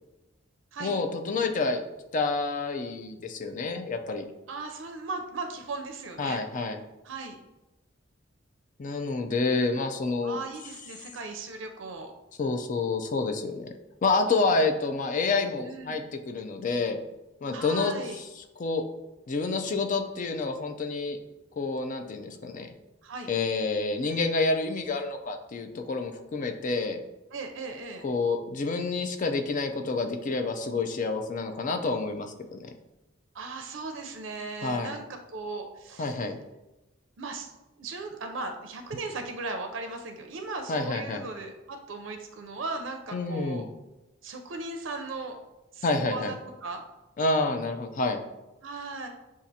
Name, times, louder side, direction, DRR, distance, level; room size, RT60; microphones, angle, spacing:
voice 1, 0.8-1.8 2.1-4.2 6.2-6.8 8.8-10.4 12.4-13.7 14.0-17.0 17.4-17.9 18.6-18.8 19.3-21.2 21.6-22.7 23.3-27.0 28.0-32.7 34.6-34.9 36.0-36.4 40.7-41.2 43.1-43.7 45.8-46.3 47.2-48.2, left 3 dB, 40° left, 6 dB, 0.4 m, -28 dB
voice 2, 4.5-6.4 7.0-7.4 10.2-12.1 15.6-16.0 17.5-18.2 23.0-23.3 27.3-28.0 33.3-36.2 37.2-37.5 37.8-43.7 44.2-45.4 45.7-46.4 46.6-46.8 48.6-49.1, right 3 dB, 80° right, 4 dB, 0.5 m, -37 dB
7.2 x 2.4 x 2.7 m, 1.0 s
head